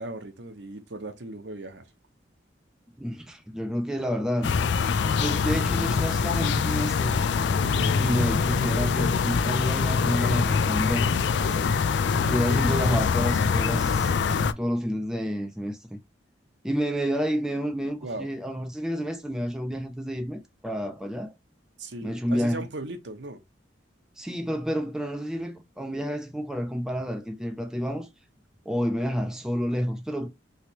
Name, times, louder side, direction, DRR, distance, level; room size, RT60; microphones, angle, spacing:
voice 1, 0.0-1.8 7.6-8.4 12.1-12.4 18.0-18.3 21.8-23.4, right 2 dB, 65° right, 0.8 m, -38 dB
voice 2, 3.0-4.5 5.2-7.2 7.9-11.1 12.3-16.0 16.6-21.3 22.0-22.6 24.2-28.1 28.7-30.3, equal, 5° right, 0.4 m, -29 dB
sound 1, 4.4-14.5, left 5 dB, 65° left, 0.3 m, -24 dB
3.3 x 2.9 x 2.8 m
head